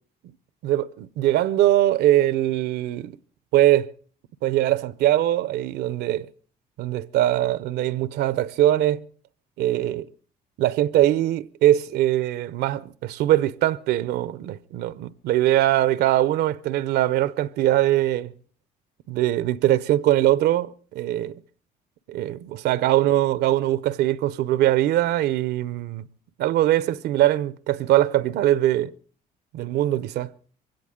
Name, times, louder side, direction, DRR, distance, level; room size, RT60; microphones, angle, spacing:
voice 1, 0.6-3.2 3.5-3.9 4.4-6.3 6.8-9.1 9.6-10.1 10.6-18.3 19.1-21.4 22.1-26.0 26.4-28.9 29.5-30.3, right 13 dB, 80° right, 0.7 m, -22 dB
22.0 x 16.5 x 3.7 m
cardioid pair, 110°, 17 cm